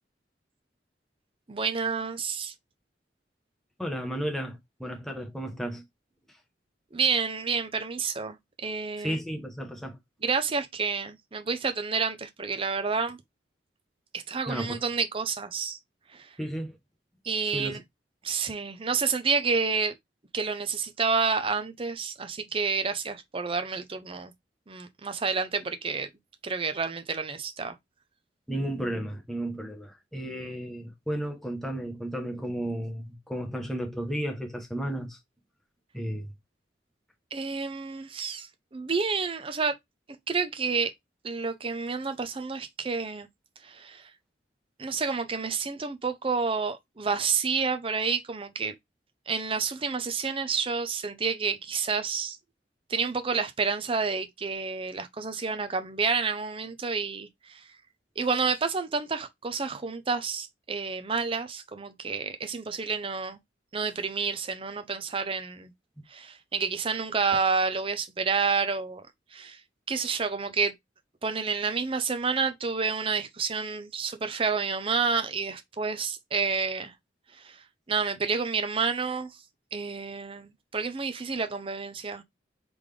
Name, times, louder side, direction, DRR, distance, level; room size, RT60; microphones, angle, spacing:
voice 1, 1.5-2.5 6.9-9.2 10.2-13.2 14.1-15.8 16.1-16.4 17.2-17.8 18.2-19.9 20.3-24.3 24.7-26.1 26.4-27.8 37.3-39.8 40.3-40.9 41.2-43.3 43.6-44.1 44.8-48.7 49.3-52.4 52.9-57.6 58.2-63.4 63.7-65.7 66.1-69.0 69.3-69.6 69.9-70.7 71.2-76.9 77.3-79.3 79.7-82.2, right 5 dB, 30° right, 0.6 m, -29 dB
voice 2, 3.8-5.8 9.0-10.0 14.5-14.8 16.4-16.8 17.5-17.8 28.5-35.2 35.9-36.3, right 1 dB, ahead, 0.8 m, -33 dB
3.8 x 3.4 x 3.2 m
head